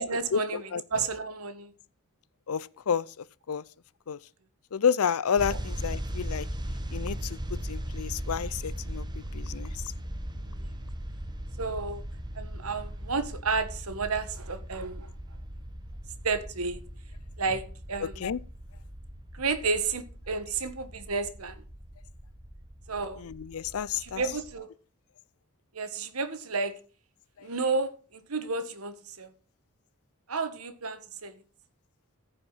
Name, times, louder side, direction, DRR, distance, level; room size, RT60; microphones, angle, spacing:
voice 1, 0.0-1.7 5.5-5.6 10.5-10.7 11.6-12.0 12.3-15.1 16.2-16.8 17.4-18.2 19.3-21.6 22.9-23.3 23.9-24.7 25.7-26.8 27.4-29.3 30.3-31.3, right 4 dB, 70° right, 1.5 m, -32 dB
voice 2, 2.5-3.1 3.5-3.6 4.1-4.2 4.7-6.5 6.9-7.4 7.7-9.0 9.3-9.7 18.2-18.4 23.2-24.2, left 7 dB, 70° left, 0.5 m, -29 dB
sound 1, 5.4-24.5, equal, 20° right, 1.2 m, -38 dB
15.0 x 5.4 x 5.6 m
head